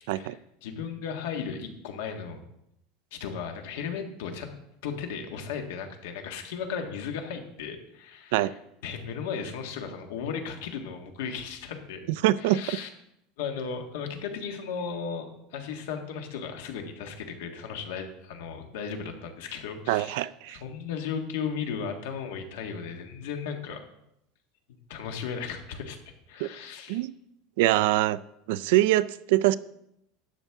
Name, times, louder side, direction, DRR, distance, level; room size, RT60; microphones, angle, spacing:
voice 1, 0.0-2.4 3.1-4.5 4.8-12.1 12.4-12.9 13.4-23.8 24.9-27.0, left 6 dB, 80° left, 4 dB, 1.6 m, -36 dB
voice 2, 12.2-12.8 19.9-20.6 26.4-26.5 26.9-27.1 27.6-28.2 28.5-29.6, right 16 dB, 65° right, 17 dB, 0.3 m, -24 dB
12.0 x 8.3 x 3.6 m, 0.80 s
supercardioid pair, 175°, 0 cm